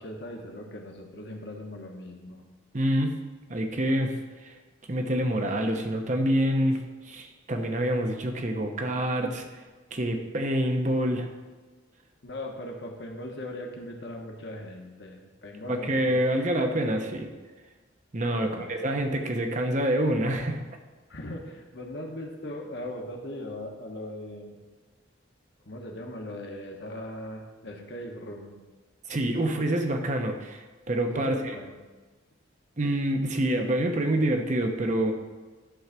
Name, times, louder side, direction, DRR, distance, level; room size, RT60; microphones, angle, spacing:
voice 1, 0.0-2.4 12.2-16.2 16.6-17.2 18.3-18.7 21.1-24.6 25.6-28.5 31.1-31.8, left 1 dB, 60° left, 1 dB, 1.3 m, -39 dB
voice 2, 2.7-3.1 3.5-4.1 4.4-4.6 4.9-6.8 7.0-9.6 9.9-11.3 15.7-17.3 18.1-20.6 29.1-31.5 32.8-35.1, right 1 dB, 40° right, 4 dB, 0.9 m, -26 dB
11.5 x 3.9 x 6.0 m, 1.3 s
head